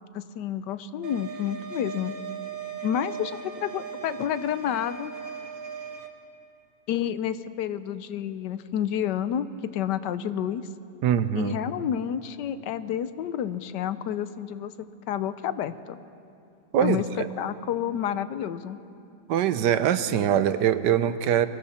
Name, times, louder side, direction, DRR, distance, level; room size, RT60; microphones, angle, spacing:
voice 1, 0.1-2.1 2.8-5.1 6.9-10.7 11.3-16.0 16.8-17.0 17.4-18.8, left 10 dB, 90° left, 13 dB, 1.3 m, -29 dB
sound 1, 1.0-6.1, right 6 dB, 55° right, 1.6 m, -38 dB
voice 2, 11.0-11.6 16.7-17.0 19.3-21.5, right 10 dB, 85° right, 12 dB, 1.4 m, -23 dB
29.0 x 23.0 x 4.3 m, 2.7 s
omnidirectional pair, 1.8 m